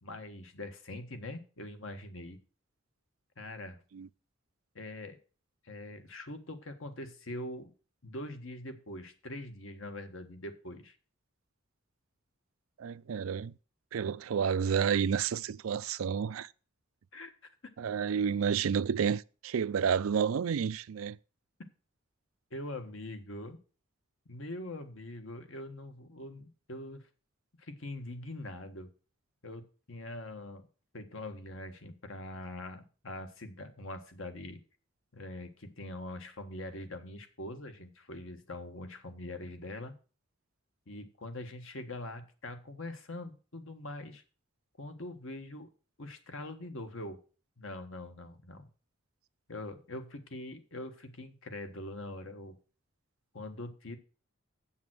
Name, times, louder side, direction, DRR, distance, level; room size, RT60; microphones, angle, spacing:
voice 1, 0.0-2.4 3.4-3.8 4.7-5.2 5.6-7.7 8.0-10.9 17.1-17.3 22.5-23.6 24.3-27.1 27.6-28.9 29.4-30.7 30.9-34.6 35.1-39.9 40.9-44.2 44.8-45.7 46.0-47.2 47.6-48.7 49.5-52.6 53.3-54.0, left 1 dB, 75° left, 1.4 m, -43 dB
voice 2, 12.8-13.5 13.9-16.5 17.8-21.2, right 7 dB, 85° right, 0.4 m, -30 dB
7.7 x 7.2 x 6.2 m
head